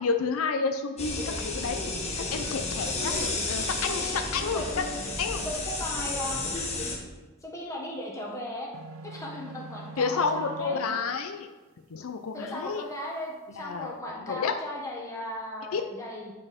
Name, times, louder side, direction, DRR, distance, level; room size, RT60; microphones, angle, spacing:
voice 1, 0.0-2.0 2.3-4.7 5.2-5.5 10.0-11.5 11.9-12.8 13.6-14.0 14.3-14.5 15.7-15.8, left 5 dB, 75° left, 6 dB, 0.5 m, -30 dB
sound 1, 1.0-7.0, left 3 dB, 30° left, 1.1 m, -32 dB
voice 2, 2.8-5.0 5.4-6.4 7.4-8.7 9.0-10.8 12.3-16.3, left 1 dB, 15° left, -2 dB, 1.3 m, -37 dB
sound 2, 8.7-11.0, right 3 dB, 70° right, 0.5 m, -43 dB
8.6 x 4.2 x 5.0 m, 1.2 s
head